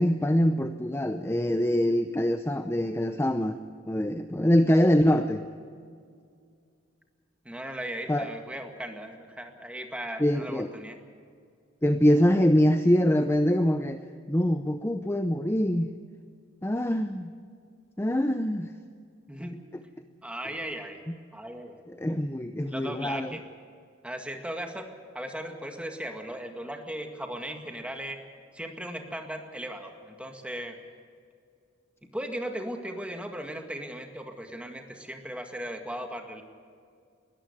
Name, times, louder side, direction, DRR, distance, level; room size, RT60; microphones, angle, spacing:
voice 1, 0.0-3.6 3.9-5.5 8.1-8.3 10.2-10.7 11.8-14.0 14.3-16.0 16.6-17.3 18.0-18.7 21.1-21.2 21.9-23.3, equal, 15° left, 8 dB, 0.6 m, -24 dB
voice 2, 7.5-11.0 19.3-19.6 20.2-21.0 21.3-21.8 22.6-23.4 24.0-24.9 25.1-28.2 28.5-30.8 32.1-36.4, right 1 dB, 5° right, 4 dB, 1.9 m, -37 dB
20.5 x 14.0 x 10.0 m, 2.3 s
head